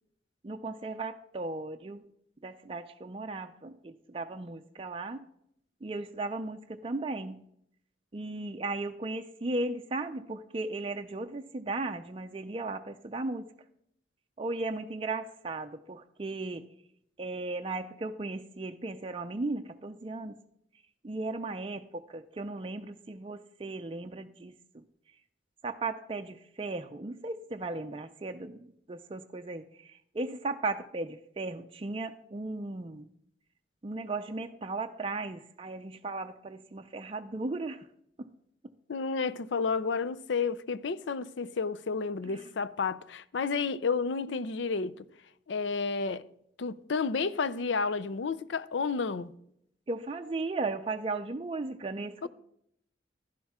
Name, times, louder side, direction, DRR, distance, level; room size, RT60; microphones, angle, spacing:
voice 1, 0.4-2.0 2.4-5.2 5.8-7.4 8.1-13.5 14.4-16.6 17.2-20.3 21.0-24.5 25.6-28.6 28.9-33.1 33.8-37.8 49.9-52.3, right 3 dB, 30° right, 0.5 m, -36 dB
voice 2, 38.9-45.0 45.5-46.3 46.6-49.3 52.2-52.3, left 4 dB, 85° left, 0.5 m, -31 dB
11.5 x 11.5 x 3.6 m
head